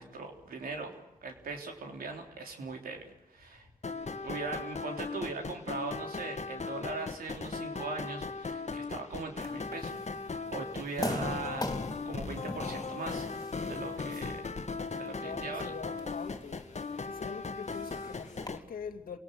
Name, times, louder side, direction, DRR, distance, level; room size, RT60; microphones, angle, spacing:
voice 1, 0.0-3.7 4.1-11.7 12.0-13.3 13.6-14.6 14.9-15.8, right 3 dB, 90° right, 3.5 m, -40 dB
sound 1, 3.8-18.6, left 4 dB, 50° left, 1.7 m, -38 dB
sound 2, 9.4-18.5, left 1 dB, 25° left, 3.5 m, -43 dB
voice 2, 15.2-16.7 17.0-19.2, left 6 dB, 90° left, 2.0 m, -43 dB
28.0 x 18.5 x 7.9 m
cardioid pair, 45°, 15 cm